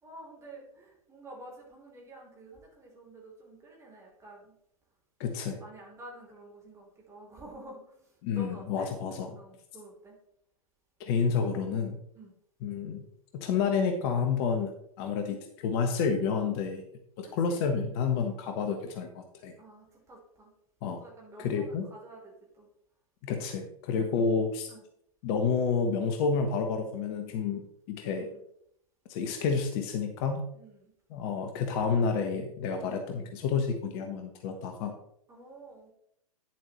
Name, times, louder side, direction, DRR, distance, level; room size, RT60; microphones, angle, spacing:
voice 1, 0.0-4.5 5.6-8.9 9.3-10.2 12.1-12.3 17.2-17.8 19.6-20.5 21.0-22.7 23.9-24.3 24.7-24.8 28.1-28.4 30.5-30.9 35.3-35.9, right 1 dB, 15° right, -2 dB, 3.3 m, -49 dB
voice 2, 5.2-5.6 8.2-9.3 11.0-12.0 12.6-13.0 13.3-14.7 15.0-16.8 17.2-19.5 20.8-21.0 21.4-21.9 23.2-24.7 25.2-28.3 29.1-30.4 31.1-34.9, left 5 dB, 40° left, 6 dB, 1.2 m, -29 dB
10.0 x 7.4 x 3.0 m, 0.71 s
figure-of-eight pair, 110°, 18 cm